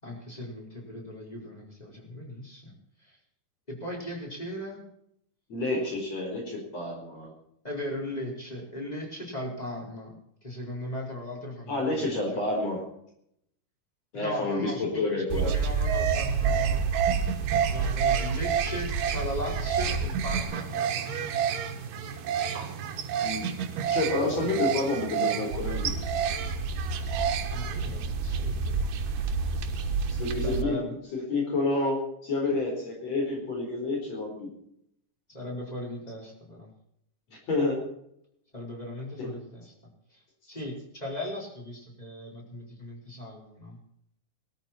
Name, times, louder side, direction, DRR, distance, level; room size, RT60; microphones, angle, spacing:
voice 1, 0.0-2.7 3.0-3.2 3.7-4.8 7.6-10.1 10.4-12.4 14.1-16.8 17.7-21.2 27.5-28.8 30.4-30.9 35.3-36.7 38.5-39.7 40.1-40.2 40.5-43.8, left 1 dB, 10° left, -2 dB, 4.9 m, -38 dB
voice 2, 5.5-7.3 11.7-12.9 14.1-15.5 22.5-22.6 23.2-23.4 23.9-25.9 29.8-30.8 31.1-34.5 37.3-37.8 39.2-39.3, left 2 dB, 50° left, 0 dB, 5.5 m, -29 dB
sound 1, 15.3-30.6, right 6 dB, 90° right, 2.9 m, -28 dB
20.5 x 13.0 x 4.4 m, 0.74 s
omnidirectional pair, 3.7 m